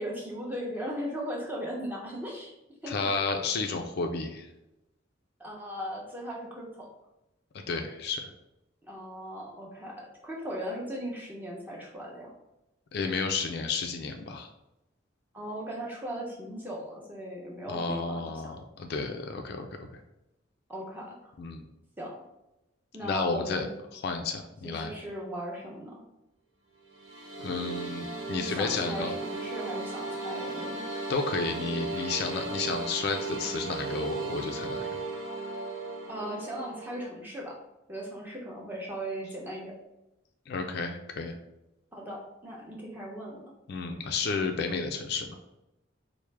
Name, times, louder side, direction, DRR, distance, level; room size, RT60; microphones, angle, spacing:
voice 1, 0.0-2.5 2.8-3.3 5.4-6.9 8.9-12.3 15.3-18.4 20.7-21.3 22.0-22.2 22.9-23.7 24.6-25.9 28.2-30.9 36.1-37.6 37.9-39.7 41.9-43.4, equal, 10° right, -3 dB, 0.7 m, -38 dB
voice 2, 2.9-4.5 7.7-8.3 12.9-14.5 17.7-19.7 19.9-20.0 21.4-21.6 23.0-23.7 23.9-24.9 27.4-29.1 31.1-34.9 40.5-41.4 43.7-45.3, left 4 dB, 55° left, 5 dB, 0.3 m, -32 dB
sound 1, 26.9-37.0, right 3 dB, 65° right, 0.8 m, -36 dB
4.5 x 2.1 x 3.2 m, 0.91 s
head